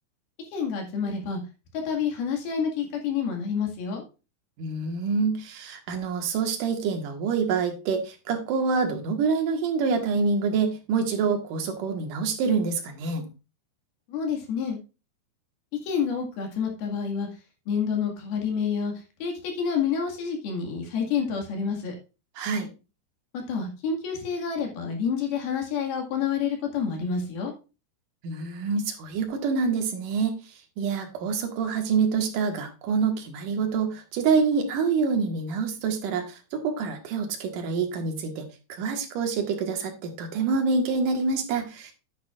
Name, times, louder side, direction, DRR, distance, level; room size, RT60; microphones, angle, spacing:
voice 1, 0.5-1.4 1.7-4.0 14.1-14.8 15.7-17.3 17.7-22.0 23.3-27.5, left 6 dB, 70° left, 2 dB, 3.9 m, -28 dB
voice 2, 4.6-13.3 22.4-22.7 28.2-30.3 30.8-41.9, right 5 dB, 65° right, 4 dB, 2.9 m, -26 dB
9.8 x 9.2 x 2.5 m, 0.30 s
omnidirectional pair, 4.5 m